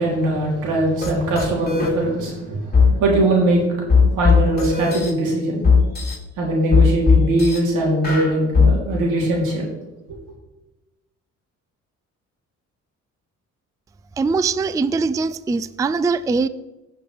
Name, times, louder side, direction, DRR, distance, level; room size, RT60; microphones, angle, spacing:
voice 1, 0.0-3.7 4.1-5.6 6.4-9.7, right 1 dB, 85° right, -3 dB, 3.6 m, -21 dB
sound 1, 1.0-1.1 1.4-1.9 2.7-2.9 3.9-5.1 5.6-6.1 6.7-7.6 8.0-8.7, left 5 dB, 30° left, 3.5 m, -16 dB
voice 2, 14.2-16.5, right 4 dB, 10° right, 14 dB, 0.3 m, -21 dB
16.0 x 6.0 x 3.5 m, 1.0 s
cardioid pair, 90°, 30 cm